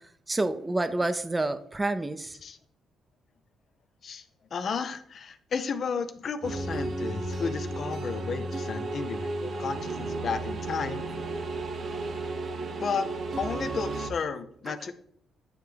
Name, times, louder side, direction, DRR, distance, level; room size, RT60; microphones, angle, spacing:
voice 1, 0.3-2.4 14.7-14.8, right 2 dB, 15° right, 11 dB, 0.5 m, -28 dB
voice 2, 4.0-11.0 12.8-13.1 13.4-14.9, left 5 dB, 55° left, 11 dB, 0.6 m, -33 dB
sound 1, 6.4-14.1, right 2 dB, 55° right, 0.8 m, -33 dB
9.6 x 3.4 x 3.4 m, 0.66 s
cardioid pair, 90°, 0 cm